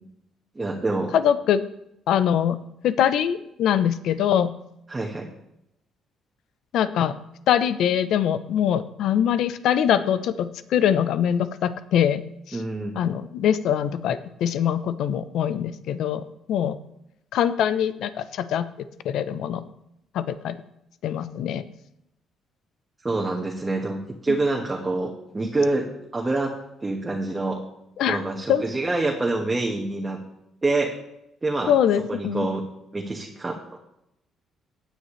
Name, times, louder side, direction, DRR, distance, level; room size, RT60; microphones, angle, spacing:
voice 1, 0.5-1.1 4.9-5.3 12.5-13.0 23.0-26.5 26.8-27.6 28.1-30.2 30.6-30.9 31.4-31.7 32.1-32.6 32.9-33.8, right 2 dB, 20° right, -1 dB, 1.5 m, -26 dB
voice 2, 1.1-1.6 2.1-2.6 2.8-4.5 6.7-7.2 7.5-12.2 12.5-12.6 12.9-16.8 17.3-18.7 19.0-19.6 20.1-20.6 21.0-21.6 28.0-28.2 28.5-28.6 31.7-32.5, left 9 dB, 75° left, 13 dB, 0.8 m, -23 dB
17.0 x 9.4 x 3.3 m, 0.80 s
cardioid pair, 110°, 0 cm